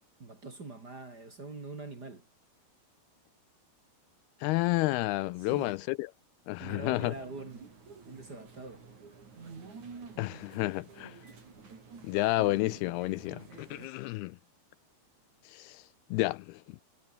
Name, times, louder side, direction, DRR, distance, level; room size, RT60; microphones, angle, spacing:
voice 1, 0.2-2.2 5.4-5.8 6.6-7.7 8.1-8.9, right 3 dB, 30° right, 2.6 m, -44 dB
voice 2, 4.4-6.1 6.5-7.1 10.2-11.2 12.0-14.4 15.5-16.8, left 20 dB, 80° left, 2.4 m, -31 dB
sound 1, 7.0-13.9, right 5 dB, 45° right, 6.1 m, -50 dB
omnidirectional pair, 4.8 m